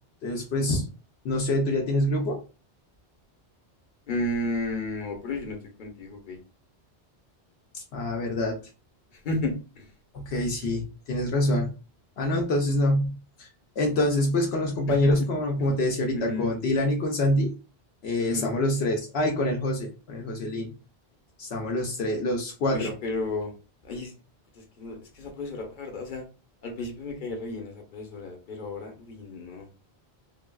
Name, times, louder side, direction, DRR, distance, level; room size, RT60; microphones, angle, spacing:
voice 1, 0.2-0.9 1.2-2.4 7.7-8.6 10.1-11.7 12.2-13.1 13.4-13.5 13.8-17.5 18.0-20.7 21.4-22.9, left 1 dB, 75° left, 1 dB, 0.9 m, -26 dB
voice 2, 4.1-6.4 9.2-9.8 14.9-15.1 16.1-16.5 18.3-18.5 22.7-23.5 23.8-24.1 24.8-26.2 26.6-29.7, left 2 dB, 50° left, 2 dB, 0.9 m, -33 dB
3.3 x 2.3 x 2.2 m, 0.32 s
omnidirectional pair, 1.1 m